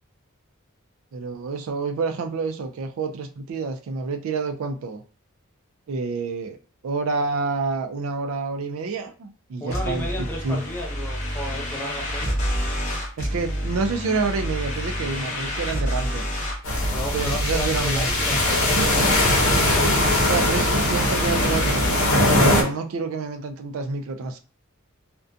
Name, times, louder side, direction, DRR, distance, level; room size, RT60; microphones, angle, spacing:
voice 1, 1.1-5.0 5.9-6.6 6.8-10.6 13.2-16.4 17.1-18.1 20.2-21.8 22.2-24.4, right 4 dB, 75° right, 5 dB, 0.4 m, -28 dB
voice 2, 9.6-12.3 16.9-19.5, equal, 10° left, -2 dB, 0.6 m, -33 dB
sound 1, 9.7-21.9, equal, 35° left, 0.9 m, -29 dB
sound 2, 16.6-22.6, left 1 dB, 90° left, 0.7 m, -21 dB
2.4 x 2.2 x 2.5 m, 0.38 s
head